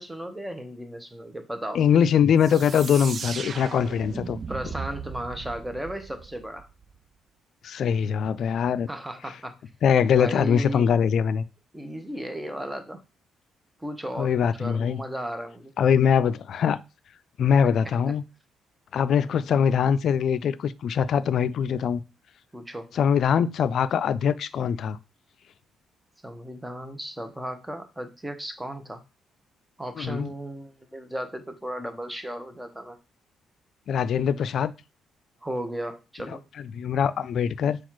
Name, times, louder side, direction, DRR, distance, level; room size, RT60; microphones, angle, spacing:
voice 1, 0.0-1.8 4.5-6.7 8.9-9.5 10.2-10.9 11.7-13.0 13.8-15.7 22.5-22.9 26.2-29.0 29.8-33.0 35.4-36.4, equal, 10° right, 0.8 m, -35 dB
voice 2, 1.7-4.4 7.6-8.9 9.8-11.4 14.2-15.0 15.8-16.8 17.4-18.2 18.9-22.0 22.9-25.0 30.0-30.3 33.9-34.7 36.7-37.8, left 7 dB, 65° left, 0.3 m, -22 dB
sound 1, 2.4-7.0, right 6 dB, 50° right, 0.3 m, -37 dB
4.2 x 2.3 x 4.5 m
cardioid pair, 90°, 0 cm